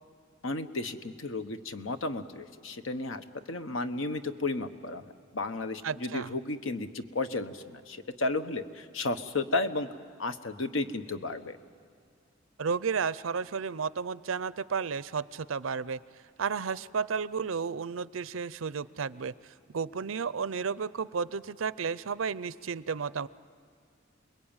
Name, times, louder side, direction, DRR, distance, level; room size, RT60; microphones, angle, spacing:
voice 1, 0.4-5.0 5.3-9.9 10.2-11.6, left 2 dB, 75° left, 9 dB, 1.1 m, -33 dB
voice 2, 5.8-6.4 12.6-16.0 16.4-23.3, right 5 dB, 85° right, 17 dB, 0.6 m, -32 dB
29.0 x 21.0 x 8.9 m, 2.3 s
head